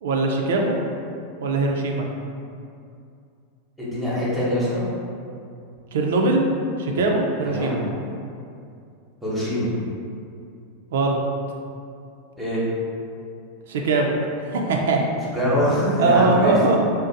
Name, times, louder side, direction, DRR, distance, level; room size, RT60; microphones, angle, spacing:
voice 1, 0.0-0.7 1.4-2.1 5.9-6.4 6.8-7.8 10.9-11.2 13.7-14.1 14.4-15.0 16.0-16.8, right 3 dB, 80° right, 1 dB, 0.4 m, -21 dB
voice 2, 3.8-4.8 7.4-7.8 9.2-9.7 12.4-12.6 15.3-16.6, equal, ahead, -9 dB, 0.8 m, -23 dB
2.6 x 2.0 x 3.9 m, 2.5 s
supercardioid pair, 130°, 0 cm